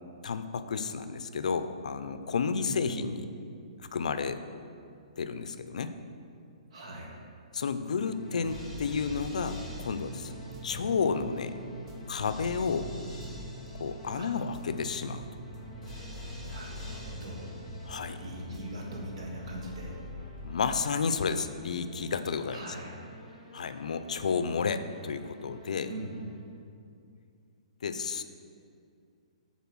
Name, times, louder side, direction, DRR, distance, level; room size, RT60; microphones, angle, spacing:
voice 1, 0.2-3.2 3.8-4.4 5.2-5.9 7.5-10.4 10.6-11.6 12.1-12.9 13.8-15.3 17.9-18.2 20.4-22.6 23.5-25.9 27.8-28.2, left 5 dB, 75° left, 10 dB, 0.4 m, -31 dB
voice 2, 2.6-3.1 6.7-7.2 14.1-14.3 16.4-17.5 18.2-20.0 22.5-23.0 25.9-26.1, right 1 dB, 55° right, -1 dB, 1.6 m, -41 dB
sound 1, 8.0-26.5, left 1 dB, 5° left, 1.9 m, -46 dB
sound 2, 8.2-19.4, right 1 dB, 40° right, 1.1 m, -45 dB
7.0 x 4.3 x 6.1 m, 2.4 s
hypercardioid pair, 165°, 4 cm